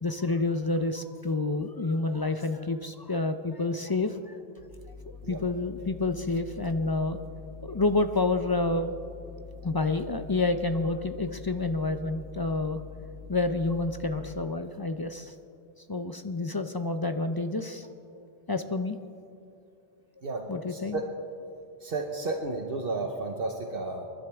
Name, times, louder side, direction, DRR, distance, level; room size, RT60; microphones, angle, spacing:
voice 1, 0.0-4.4 5.3-7.2 7.6-8.9 9.6-12.8 13.3-15.3 15.9-17.9 18.1-19.0 20.5-21.0, left 3 dB, 35° left, 8 dB, 0.4 m, -29 dB
sound 1, 4.6-14.3, left 6 dB, 70° left, 4.1 m, -45 dB
voice 2, 20.2-21.0 21.8-24.1, right 3 dB, 65° right, 3 dB, 1.2 m, -32 dB
27.5 x 11.5 x 3.5 m, 2.5 s
omnidirectional pair, 1.0 m